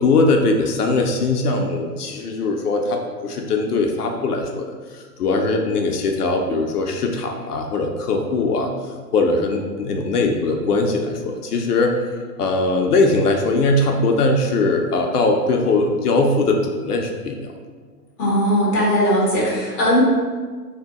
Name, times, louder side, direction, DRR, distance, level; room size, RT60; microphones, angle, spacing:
voice 1, 0.0-4.7 4.9-8.7 9.1-12.0 12.4-17.5, left 3 dB, 70° left, 3 dB, 0.6 m, -20 dB
voice 2, 18.2-20.0, equal, 15° left, -6 dB, 0.5 m, -19 dB
2.7 x 2.2 x 3.6 m, 1.5 s
figure-of-eight pair, 120°, 49 cm